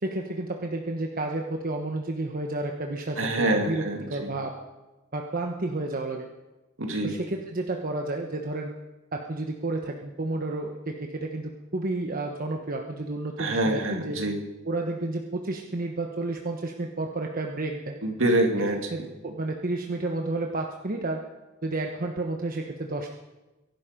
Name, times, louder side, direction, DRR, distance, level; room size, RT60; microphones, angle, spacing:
voice 1, 0.0-4.5 5.1-6.3 7.0-8.7 9.1-14.2 14.6-18.0 18.9-21.3 21.6-23.1, right 2 dB, 45° right, 2 dB, 1.2 m, -31 dB
voice 2, 3.2-4.3 6.8-7.1 13.4-14.4 18.0-18.9, right 1 dB, 70° right, 3 dB, 2.5 m, -26 dB
23.0 x 11.5 x 5.2 m, 1.1 s
head